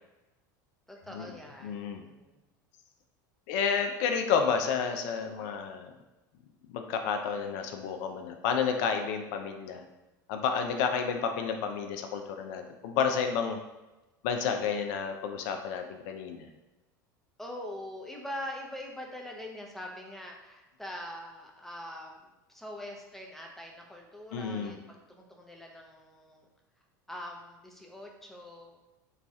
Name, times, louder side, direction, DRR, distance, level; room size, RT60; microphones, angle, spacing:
voice 1, 0.9-2.4 17.4-22.2 22.5-26.5 27.1-28.8, left 1 dB, 5° left, 0 dB, 0.5 m, -43 dB
voice 2, 1.6-2.0 3.5-5.9 6.7-9.8 10.3-13.6 14.2-16.5 24.3-24.8, left 6 dB, 60° left, 5 dB, 0.4 m, -30 dB
3.0 x 2.3 x 2.6 m, 1.0 s
hypercardioid pair, 90°, 11 cm